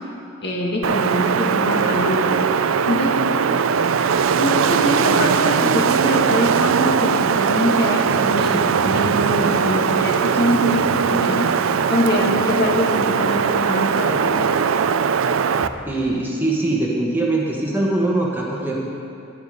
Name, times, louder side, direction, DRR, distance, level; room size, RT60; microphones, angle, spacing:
voice 1, 0.4-3.2 4.4-14.5, equal, 50° left, -2 dB, 1.8 m, -23 dB
Wind, 0.8-15.7, right 6 dB, 75° right, 0.4 m, -20 dB
voice 2, 15.9-18.8, right 2 dB, 10° right, -3 dB, 1.2 m, -22 dB
12.0 x 10.5 x 5.3 m, 2.6 s
head